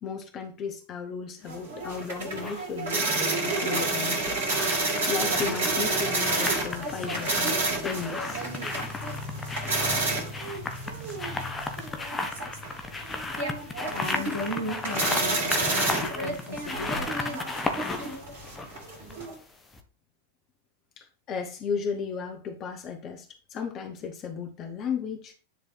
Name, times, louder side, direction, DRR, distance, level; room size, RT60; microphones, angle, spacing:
voice 1, 0.0-4.4 5.1-7.5 7.8-8.4 21.0-25.3, left 6 dB, 35° left, 1.1 m, -35 dB
sound 1, 1.5-19.3, right 2 dB, 60° right, 2.5 m, -30 dB
sound 2, 1.9-2.6 3.9-19.4 19.7-19.8, left 3 dB, 15° left, 1.3 m, -35 dB
voice 2, 13.9-17.3, left 2 dB, 75° left, 2.2 m, -36 dB
10.5 x 3.4 x 4.6 m
figure-of-eight pair, 90°, 0 cm